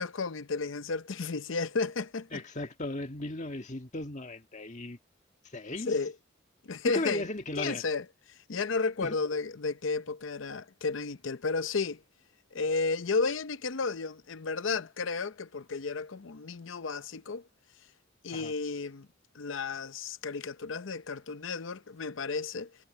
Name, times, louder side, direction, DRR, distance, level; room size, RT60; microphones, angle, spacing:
voice 1, 0.0-2.4 5.9-6.1 6.6-7.3 7.6-8.0 8.5-12.0 12.5-17.4 18.2-19.1 19.3-22.7, left 4 dB, 75° left, 0.7 m, -32 dB
voice 2, 2.3-5.0 5.5-5.9 6.8-7.8 9.0-9.2 18.3-18.5, left 2 dB, 40° left, 1.7 m, -36 dB
head